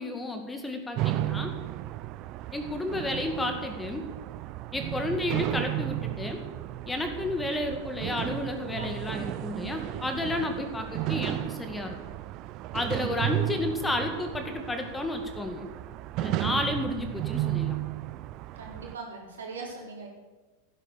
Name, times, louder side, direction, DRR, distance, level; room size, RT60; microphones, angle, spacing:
voice 1, 0.0-1.5 2.5-4.1 4.7-6.4 6.9-12.0 12.7-15.7 16.2-17.8, left 2 dB, 10° left, 5 dB, 2.1 m, -32 dB
sound 1, 1.0-18.9, right 16 dB, 40° right, 0.5 m, -34 dB
voice 2, 8.7-9.2 18.6-20.1, right 4 dB, 65° right, -1 dB, 4.4 m, -41 dB
16.5 x 11.5 x 7.0 m, 1.3 s
figure-of-eight pair, 90°, 0 cm